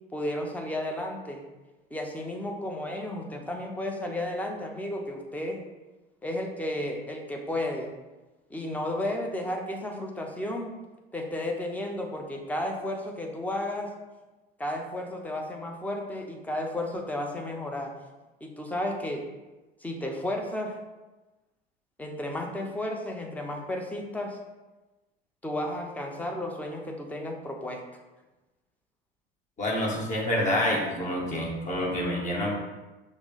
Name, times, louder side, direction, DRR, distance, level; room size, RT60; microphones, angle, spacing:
voice 1, 0.1-1.5 1.9-5.6 6.2-7.9 8.5-10.7 11.1-13.9 14.6-17.9 18.4-19.2 19.8-20.8 22.0-24.4 25.4-27.8, left 1 dB, 5° left, 1 dB, 0.6 m, -33 dB
voice 2, 29.6-32.5, left 1 dB, 25° left, -3 dB, 1.4 m, -27 dB
5.9 x 2.0 x 3.8 m, 1.1 s
figure-of-eight pair, 70°, 30 cm